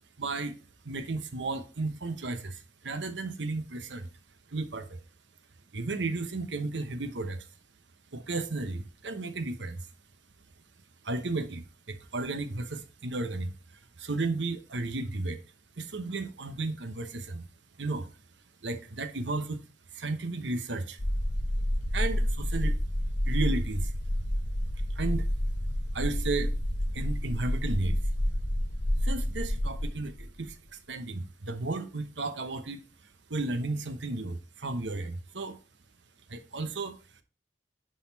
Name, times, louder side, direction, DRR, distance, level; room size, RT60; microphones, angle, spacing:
voice 1, 0.2-0.6 0.8-4.1 4.5-5.0 5.7-7.5 8.1-9.9 11.0-13.5 14.0-15.4 15.8-17.4 17.8-18.1 18.6-19.6 19.9-21.0 21.9-22.8 23.2-23.9 24.9-25.3 25.9-26.6 26.9-28.0 29.0-32.8 33.3-35.6 36.3-37.0, right 3 dB, 85° right, 1.0 m, -33 dB
sound 1, 21.0-30.5, equal, 50° left, 1.2 m, -29 dB
10.0 x 4.2 x 4.0 m
head